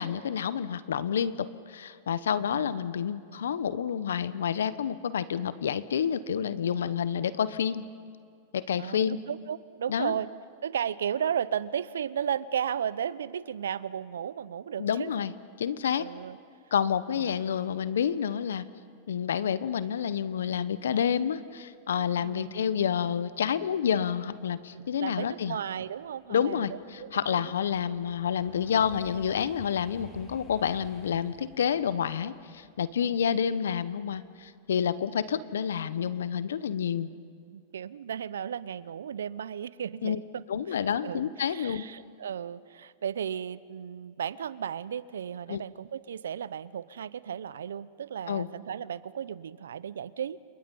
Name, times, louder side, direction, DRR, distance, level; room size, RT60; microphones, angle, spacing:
voice 1, 0.0-7.9 8.5-9.2 9.9-10.1 14.8-15.3 15.6-16.1 16.7-18.6 19.1-25.6 26.3-37.1 40.0-40.2 40.5-41.8 45.5-45.6 48.3-48.5, left 8 dB, 80° left, 16 dB, 0.9 m, -29 dB
voice 2, 8.8-10.3 10.6-15.1 16.0-16.4 22.1-22.6 24.7-27.5 27.9-28.0 33.0-33.1 34.8-34.9 37.5-40.4 40.7-50.4, right 8 dB, 80° right, 19 dB, 0.7 m, -35 dB
sound 1, 25.7-34.5 34.9-35.3, left 1 dB, 15° left, 6.7 m, -55 dB
29.5 x 27.5 x 5.5 m, 2.2 s
hypercardioid pair, 100°, 0 cm